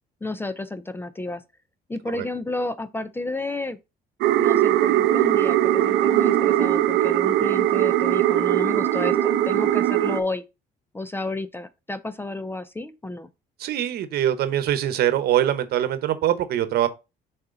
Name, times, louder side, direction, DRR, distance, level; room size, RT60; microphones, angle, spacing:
voice 1, 0.2-1.4 1.9-3.8 4.4-10.4 10.9-13.3, left 2 dB, 15° left, 0.5 m, -31 dB
sound 1, 4.2-10.2, right 12 dB, 85° right, 0.7 m, -20 dB
voice 2, 13.6-16.9, right 11 dB, 70° right, 1.0 m, -23 dB
6.6 x 4.2 x 3.9 m
cardioid pair, 110°, 17 cm